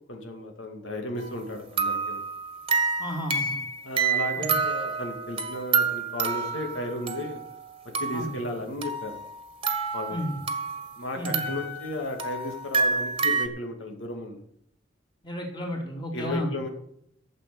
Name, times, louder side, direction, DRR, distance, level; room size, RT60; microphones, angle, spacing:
voice 1, 0.0-2.2 3.8-7.4 8.0-9.1 9.9-10.2 11.0-14.4 16.1-16.7, left 1 dB, 85° left, 3 dB, 2.3 m, -34 dB
sound 1, 1.2-1.4 1.8-7.6 7.9-8.3 8.8-10.9 11.3-13.5, right 5 dB, 30° right, 1.5 m, -28 dB
voice 2, 3.0-3.6 4.4-4.6 8.1-8.3 10.1-10.4 11.1-11.6 15.2-16.5, equal, 25° left, 0 dB, 3.4 m, -32 dB
13.0 x 7.8 x 6.9 m, 0.71 s
head